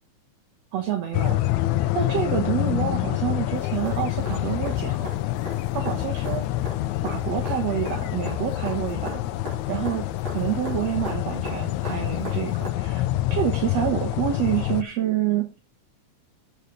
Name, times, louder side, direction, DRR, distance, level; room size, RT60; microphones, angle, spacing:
voice 1, 0.7-1.4 1.9-5.1 5.7-6.5 7.0-9.2 9.7-13.0 13.3-15.5, right 11 dB, 65° right, 4 dB, 2.2 m, -27 dB
sound 1, 1.1-14.8, left 15 dB, 80° left, 1.9 m, -27 dB
sound 2, 3.5-12.7 14.7-14.8, right 1 dB, 40° right, 4.8 m, -40 dB
7.9 x 6.8 x 6.6 m, 0.32 s
omnidirectional pair, 3.4 m